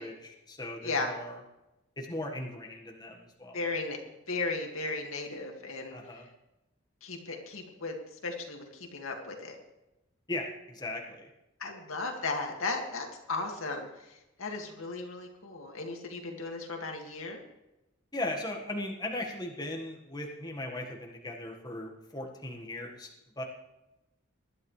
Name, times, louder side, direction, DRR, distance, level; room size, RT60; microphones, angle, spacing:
voice 1, 0.0-1.4 2.0-3.6 5.9-6.3 7.3-7.4 10.3-11.3 18.1-23.1 23.4-23.5, left 1 dB, 20° left, 0 dB, 1.5 m, -38 dB
voice 2, 3.5-4.0 4.3-6.0 7.0-8.0 8.2-9.6 11.6-17.4, left 3 dB, 85° left, 2 dB, 2.2 m, -35 dB
19.5 x 12.0 x 3.3 m, 0.95 s
head